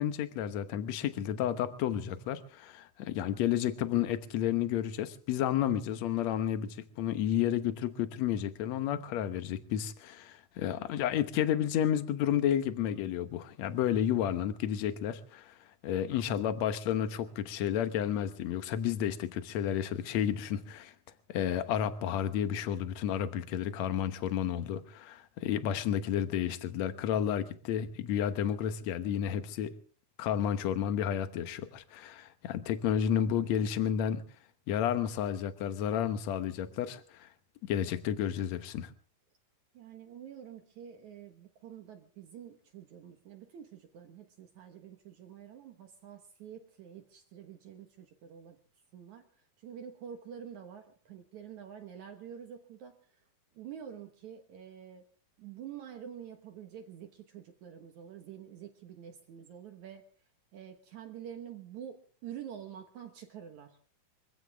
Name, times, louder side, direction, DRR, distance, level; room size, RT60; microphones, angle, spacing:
voice 1, 0.0-15.5 15.8-20.9 21.3-29.7 30.2-34.2 34.7-37.3 37.7-38.9, left 10 dB, 65° left, 11 dB, 2.0 m, -31 dB
voice 2, 39.7-48.6 48.9-53.0 53.5-55.1 55.4-60.0 60.5-63.8, right 9 dB, 65° right, 5 dB, 2.5 m, -47 dB
24.5 x 16.0 x 3.5 m, 0.41 s
omnidirectional pair, 4.0 m